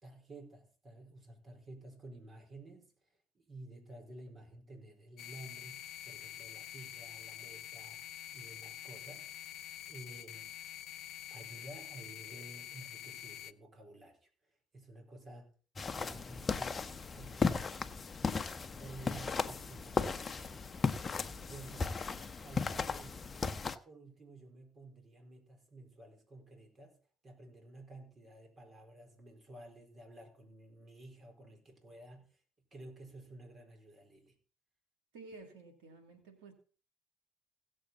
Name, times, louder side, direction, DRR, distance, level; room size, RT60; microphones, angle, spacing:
voice 1, 0.0-2.9 3.3-9.3 9.9-10.5 11.3-14.3 14.7-15.5 15.9-17.6 18.8-20.9 21.5-22.0 22.4-23.3 23.6-26.9 27.2-32.2 32.7-34.3, right 2 dB, 40° right, 4.5 m, -53 dB
sound 1, 5.2-13.5, left 12 dB, 70° left, 0.4 m, -47 dB
sound 2, 15.8-23.8, left 4 dB, 35° left, 0.9 m, -36 dB
voice 2, 35.1-36.5, right 3 dB, 85° right, 2.6 m, -52 dB
17.0 x 7.3 x 4.0 m
hypercardioid pair, 60°, 0 cm